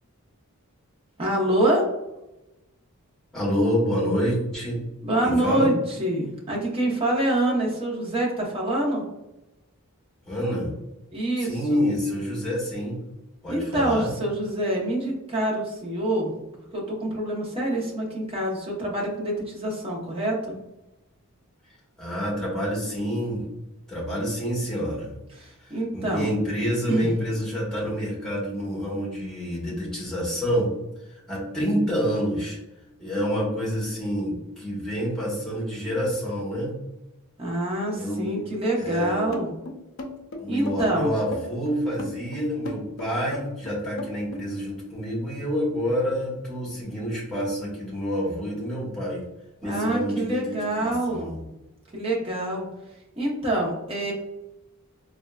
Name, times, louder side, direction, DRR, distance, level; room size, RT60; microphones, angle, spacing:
voice 1, 1.2-1.8 5.0-9.0 11.1-11.8 13.5-16.3 16.7-20.5 25.3-26.3 26.9-27.1 37.4-39.5 40.5-41.2 49.6-51.4 51.9-52.7 53.2-54.1, right 1 dB, 25° right, -3 dB, 0.8 m, -26 dB
voice 2, 3.3-4.8 5.2-5.7 10.2-10.7 11.4-13.0 13.4-14.1 22.0-23.5 23.9-25.1 25.6-30.8 31.1-32.6 33.0-36.7 37.9-38.4 38.7-39.2 40.4-49.2 49.6-51.4, equal, 5° left, -6 dB, 1.2 m, -27 dB
sound 1, 39.3-44.5, left 2 dB, 60° left, 0.5 m, -36 dB
3.5 x 2.4 x 2.3 m, 0.96 s
head